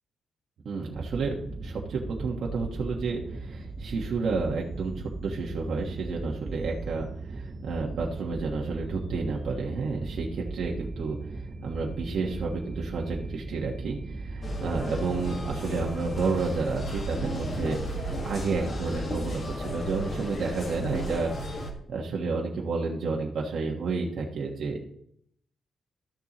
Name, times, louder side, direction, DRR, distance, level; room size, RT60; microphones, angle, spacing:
voice 1, 0.6-1.3 1.6-24.8, right 4 dB, 65° right, -2 dB, 1.3 m, -31 dB
sound 1, 0.9-19.5, right 3 dB, 35° right, 0.8 m, -38 dB
sound 2, 14.4-21.7, equal, 45° left, 1.7 m, -34 dB
13.0 x 6.9 x 3.0 m, 0.70 s
wide cardioid pair, 140°, 0 cm